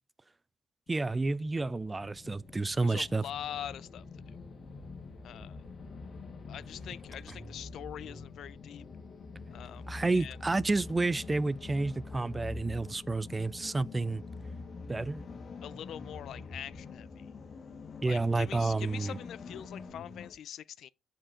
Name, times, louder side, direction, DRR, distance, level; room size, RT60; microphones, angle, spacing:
sound 1, 0.9-20.3, left 4 dB, 50° left, 1.8 m, -45 dB
voice 1, 0.9-3.2 9.9-14.2 14.9-15.2 18.0-19.2, right 3 dB, 20° right, 0.4 m, -30 dB
voice 2, 2.5-4.2 5.2-5.6 6.5-8.9 9.5-10.4 15.6-17.3 18.1-20.9, left 10 dB, 70° left, 0.4 m, -44 dB
8.6 x 5.1 x 3.6 m
cardioid pair, 90°, 0 cm